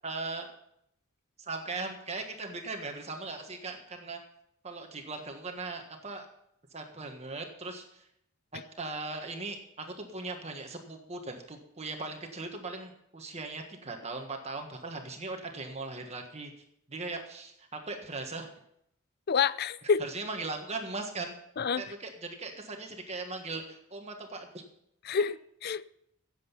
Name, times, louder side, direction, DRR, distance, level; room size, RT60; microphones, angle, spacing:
voice 1, 0.0-0.5 1.4-4.2 4.6-6.3 6.7-8.1 8.8-16.5 16.9-18.5 20.0-21.3 21.7-24.6, right 3 dB, 30° right, 1.5 m, -39 dB
voice 2, 19.3-20.0 21.6-21.8 25.1-25.4 25.6-25.9, left 6 dB, 45° left, 0.5 m, -27 dB
16.5 x 7.9 x 5.6 m
head